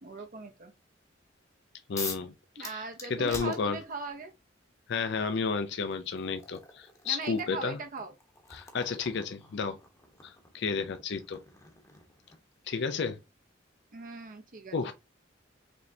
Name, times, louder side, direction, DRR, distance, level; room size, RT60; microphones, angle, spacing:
voice 1, 0.0-0.7 2.6-4.3 7.0-8.1 13.9-14.9, right 3 dB, 45° right, 0.6 m, -40 dB
voice 2, 1.9-2.3 2.6-2.8 3.1-3.8 4.9-7.8 8.5-9.8 10.2-11.4 12.7-13.2 14.7-14.9, left 5 dB, 60° left, 0.5 m, -32 dB
sound 1, 2.0-2.3 2.6-4.2 5.3-5.4 5.9-12.6, left 4 dB, 15° left, 0.9 m, -45 dB
5.1 x 3.3 x 2.7 m
head